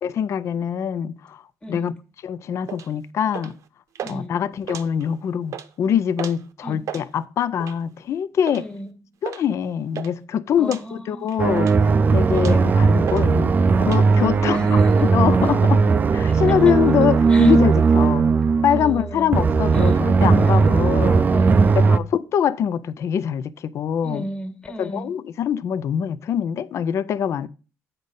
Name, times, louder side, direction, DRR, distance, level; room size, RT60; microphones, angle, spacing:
voice 1, 0.0-1.4 1.7-1.9 2.2-3.6 4.1-8.7 9.2-13.5 13.8-18.3 18.6-21.3 21.8-24.2 24.8-27.5, left 8 dB, 50° left, 0.5 m, -24 dB
voice 2, 1.6-1.9 4.0-4.4 6.6-6.9 8.5-8.9 10.6-11.3 12.3-12.6 14.5-15.1 15.4-15.5 16.2-16.8 17.3-17.5 18.7-19.3 19.7-20.0 20.4-20.9 21.3-22.0 24.0-25.1, equal, 15° left, 1.6 m, -35 dB
sound 1, 2.7-2.9 3.3-3.6 3.9-4.2 4.6-5.1 5.4-5.7 6.2-6.4 6.7-7.0 7.6-7.9 8.5-8.7 9.2-9.4 9.7-10.1 10.6-10.8 11.3-11.9 12.3-12.7 13.1-13.3 13.5-14.0, right 9 dB, 60° right, 0.7 m, -34 dB
sound 2, 11.4-22.0, right 4 dB, 30° right, 0.4 m, -17 dB
8.2 x 5.2 x 5.4 m
cardioid pair, 120°, 6 cm